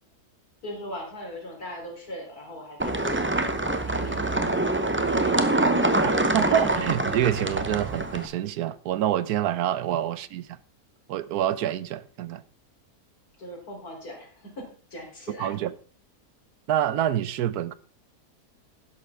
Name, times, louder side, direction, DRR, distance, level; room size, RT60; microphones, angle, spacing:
voice 1, 0.6-4.4 13.4-15.5, left 1 dB, 70° left, 4.2 m, -40 dB
sound 1, 2.8-8.3, right 2 dB, 10° right, 0.6 m, -25 dB
voice 2, 6.0-10.6 11.1-12.4 15.4-15.7 16.7-17.8, right 11 dB, 80° right, 1.2 m, -27 dB
12.0 x 11.0 x 3.5 m
omnidirectional pair, 1.7 m